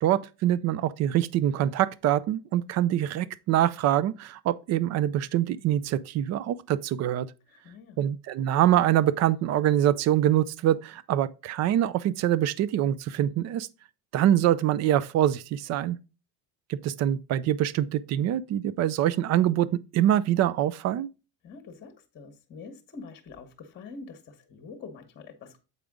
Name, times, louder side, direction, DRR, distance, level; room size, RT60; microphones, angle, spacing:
voice 1, 0.0-7.3 8.0-13.7 14.1-16.0 16.7-21.1, right 12 dB, 40° right, 0.4 m, -24 dB
voice 2, 7.5-8.0 21.4-25.7, left 4 dB, 25° left, 1.0 m, -45 dB
8.0 x 5.0 x 3.5 m
cardioid pair, 165°, 42 cm